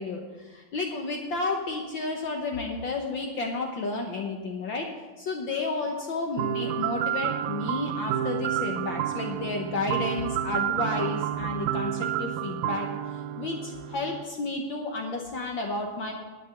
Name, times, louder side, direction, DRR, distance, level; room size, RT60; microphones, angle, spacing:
voice 1, 0.0-4.9 5.2-16.1, left 3 dB, 65° left, 2 dB, 1.2 m, -32 dB
sound 1, 6.4-14.2, right 11 dB, 90° right, 2.0 m, -30 dB
11.0 x 9.5 x 5.8 m, 1.3 s
omnidirectional pair, 3.4 m